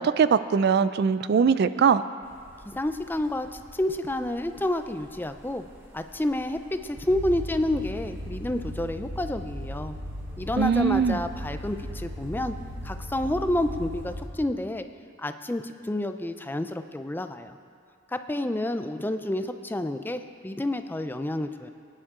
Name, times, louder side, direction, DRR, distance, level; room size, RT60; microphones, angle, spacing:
voice 1, 0.0-2.0 10.6-11.2, right 6 dB, 55° right, 14 dB, 0.3 m, -21 dB
sound 1, 2.2-14.3, equal, 10° right, 1.5 m, -51 dB
voice 2, 2.7-5.6 5.9-9.9 10.4-12.5 12.8-14.9 15.2-17.6 18.1-21.7, left 1 dB, 10° left, 8 dB, 0.5 m, -29 dB
sound 2, 7.0-14.3, equal, 85° right, 3.5 m, -37 dB
23.0 x 9.9 x 3.7 m, 2.2 s
head